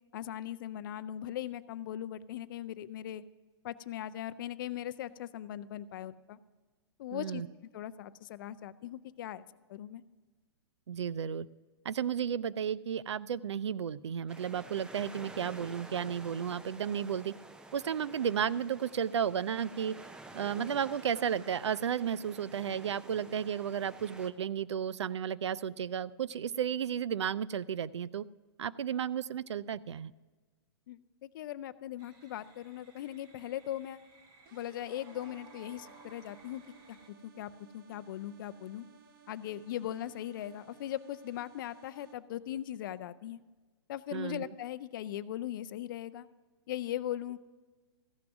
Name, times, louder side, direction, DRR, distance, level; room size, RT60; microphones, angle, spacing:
voice 1, 0.1-3.2 3.6-6.4 7.0-7.4 7.7-9.4 9.7-10.0 30.9-34.0 34.5-36.6 36.9-38.8 39.3-43.4 43.9-46.3 46.7-47.4, left 12 dB, 50° left, 14 dB, 0.5 m, -39 dB
voice 2, 7.1-7.5 10.9-11.5 11.8-17.3 17.7-19.9 20.3-28.2 28.6-30.1 44.1-44.5, right 8 dB, 85° right, 19 dB, 0.4 m, -33 dB
sound 1, 14.3-24.3, right 2 dB, 5° right, 0.5 m, -51 dB
sound 2, 32.0-37.1, right 4 dB, 25° right, 1.1 m, -58 dB
sound 3, 34.5-42.1, right 6 dB, 50° right, 1.1 m, -60 dB
14.5 x 6.0 x 5.9 m, 1.3 s
hypercardioid pair, 135°, 14 cm